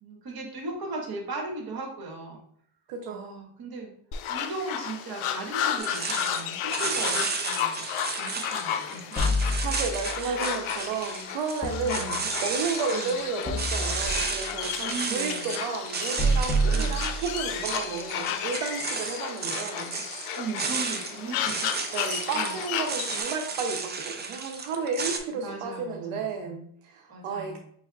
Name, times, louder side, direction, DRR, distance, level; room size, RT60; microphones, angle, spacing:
voice 1, 0.0-2.4 3.1-3.9 4.3-7.8 8.2-9.3 10.2-10.4 11.8-12.2 12.9-13.2 14.8-15.6 16.7-17.0 20.3-21.7 22.3-22.6 25.3-26.4 27.1-27.6, right 3 dB, 45° right, 0 dB, 1.5 m, -37 dB
voice 2, 2.9-3.5 9.6-20.0 21.9-27.6, right 5 dB, 85° right, 2 dB, 0.7 m, -32 dB
sound 1, 4.1-23.2, left 9 dB, 75° left, 0.6 m, -33 dB
sound 2, 5.8-25.2, right 4 dB, 25° right, 0.4 m, -33 dB
sound 3, 9.2-10.2 11.6-12.6 13.4-14.5 16.2-17.6, right 1 dB, 15° left, 0.7 m, -28 dB
5.5 x 3.3 x 2.3 m, 0.63 s
cardioid pair, 120°, 50 cm